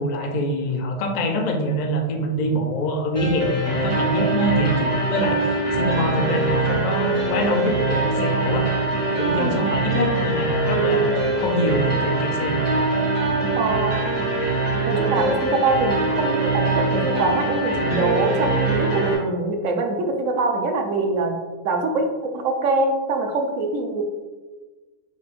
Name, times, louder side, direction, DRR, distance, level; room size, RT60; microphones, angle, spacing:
voice 1, 0.0-8.7 9.1-12.6, left 1 dB, 65° left, 3 dB, 0.4 m, -25 dB
sound 1, 3.1-19.1, right 2 dB, 20° right, 1.2 m, -22 dB
voice 2, 13.5-14.0 14.8-21.4 21.6-24.0, right 3 dB, 75° right, 4 dB, 1.0 m, -23 dB
5.4 x 3.2 x 2.5 m, 1.3 s
omnidirectional pair, 1.4 m